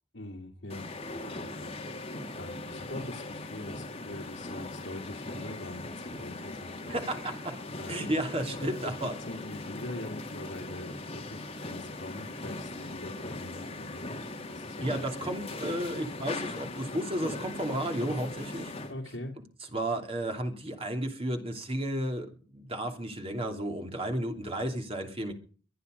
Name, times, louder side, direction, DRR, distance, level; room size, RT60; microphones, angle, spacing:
voice 1, 0.1-7.0 7.7-8.1 8.6-14.9 15.2-15.3 18.9-19.3, left 1 dB, 70° left, 0 dB, 2.4 m, -43 dB
sound 1, 0.7-18.9, left 2 dB, 30° left, 2.1 m, -40 dB
voice 2, 6.9-7.6 7.9-9.2 14.8-18.7 19.7-25.3, right 1 dB, 30° right, 4 dB, 2.8 m, -33 dB
23.5 x 9.5 x 5.1 m, 0.41 s
head